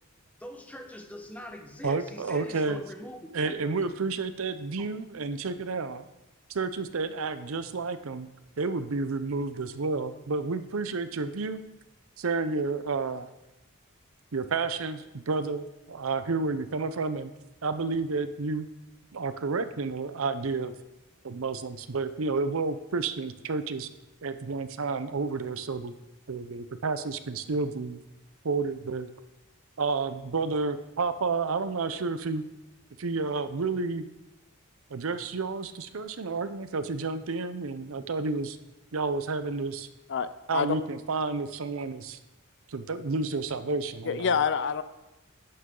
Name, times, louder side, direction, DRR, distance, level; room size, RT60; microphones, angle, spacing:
voice 1, 0.4-3.9 4.8-4.9, equal, 5° left, 4 dB, 1.1 m, -43 dB
voice 2, 1.8-2.8 3.3-6.0 6.5-8.3 8.6-11.6 12.2-13.3 14.3-17.3 17.6-18.7 19.1-20.7 21.2-23.9 24.2-25.9 26.3-28.0 28.4-29.1 29.8-32.4 33.0-34.1 34.9-38.6 38.9-39.9 40.5-42.2 42.7-44.4, right 4 dB, 70° right, 11 dB, 0.6 m, -30 dB
voice 3, 40.1-40.8 44.0-44.8, left 6 dB, 55° left, 13 dB, 0.5 m, -27 dB
11.5 x 9.5 x 3.8 m, 0.99 s
head